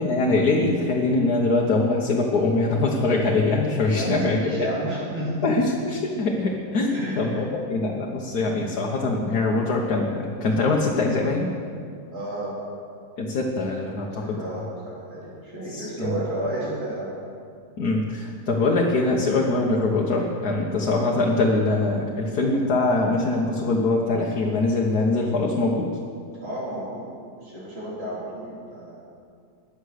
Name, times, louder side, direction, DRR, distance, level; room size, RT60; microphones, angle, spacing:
voice 1, 0.0-4.4 5.4-11.5 13.2-14.6 15.7-16.2 17.8-25.9, left 2 dB, 75° left, -1 dB, 1.7 m, -23 dB
voice 2, 3.9-5.6 6.9-7.5 12.1-12.6 13.9-17.1 26.4-27.1 27.4-29.0, right 1 dB, 40° right, -8 dB, 3.2 m, -32 dB
21.0 x 7.2 x 6.5 m, 2.3 s
omnidirectional pair, 1.7 m